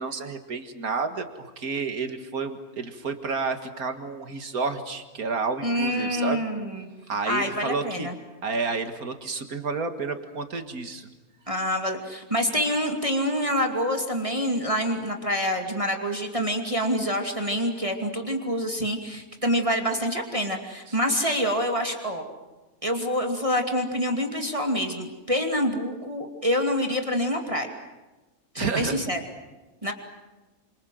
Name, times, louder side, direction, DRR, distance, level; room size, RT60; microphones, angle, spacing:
voice 1, 0.0-6.4 7.1-8.1 8.4-11.1 20.9-21.0 28.6-29.1, right 4 dB, 85° right, 7 dB, 2.3 m, -30 dB
voice 2, 5.6-6.9 7.3-8.1 11.5-22.3 22.8-27.7 28.5-29.2 29.8-29.9, equal, 20° right, 3 dB, 2.7 m, -26 dB
28.5 x 26.5 x 7.8 m, 1.1 s
omnidirectional pair, 1.5 m